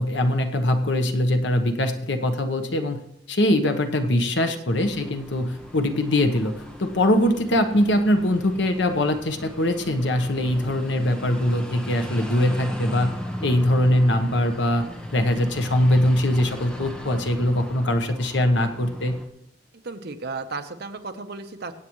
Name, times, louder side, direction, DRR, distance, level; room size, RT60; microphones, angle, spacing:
voice 1, 0.0-3.0 3.3-13.1 13.4-14.8 15.1-19.2, left 1 dB, 70° left, 7 dB, 1.1 m, -22 dB
sound 1, 4.7-19.3, equal, 5° left, 1.0 m, -38 dB
voice 2, 19.8-21.7, right 3 dB, 60° right, 7 dB, 1.0 m, -34 dB
22.5 x 8.4 x 3.1 m, 0.85 s
head